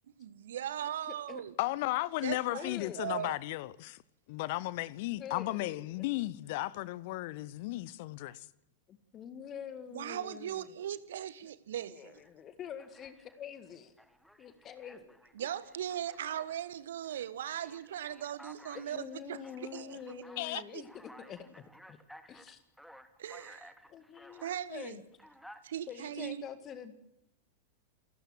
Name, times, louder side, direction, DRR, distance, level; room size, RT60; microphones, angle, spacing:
voice 1, 0.2-1.5 2.2-2.7 3.0-3.4 9.9-12.2 15.3-20.8 23.2-23.7 24.4-25.0 25.6-26.4, right 10 dB, 60° right, 1.4 m, -39 dB
voice 2, 1.6-4.0 4.3-8.5 20.4-20.6, left 18 dB, 50° left, 0.8 m, -35 dB
voice 3, 2.5-3.3 5.2-5.8 8.9-10.6 11.9-13.9 14.4-15.2 18.7-21.4 21.9-22.0 22.3-22.6 23.9-25.0 25.9-26.9, left 8 dB, 30° left, 1.9 m, -45 dB
Alarm, 12.1-12.3 12.8-13.5 14.0-16.6 17.0-24.6 25.1-25.6, equal, ahead, 1.9 m, -56 dB
29.0 x 16.0 x 7.7 m
figure-of-eight pair, 90°, 0 cm